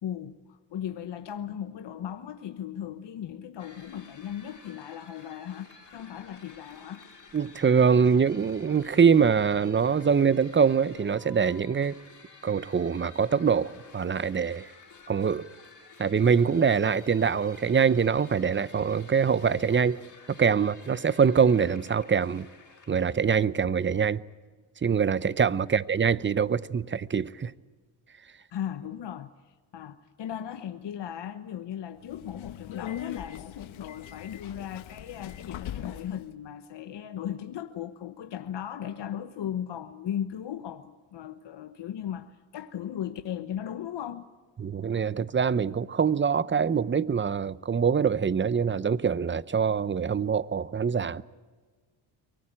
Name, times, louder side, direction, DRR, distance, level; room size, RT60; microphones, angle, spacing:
voice 1, 0.0-7.0 28.5-44.3, left 10 dB, 60° left, 1.1 m, -37 dB
sound 1, 3.6-23.1, left 4 dB, 40° left, 4.4 m, -52 dB
voice 2, 7.3-11.9 12.4-14.7 15.1-15.5 16.0-20.0 20.4-22.5 22.9-24.2 24.8-27.5 44.6-51.2, right 6 dB, 25° right, 0.7 m, -24 dB
Subway metro underground, 32.0-36.2, left 11 dB, 75° left, 1.2 m, -40 dB
24.0 x 19.0 x 8.9 m
cardioid pair, 80°, 47 cm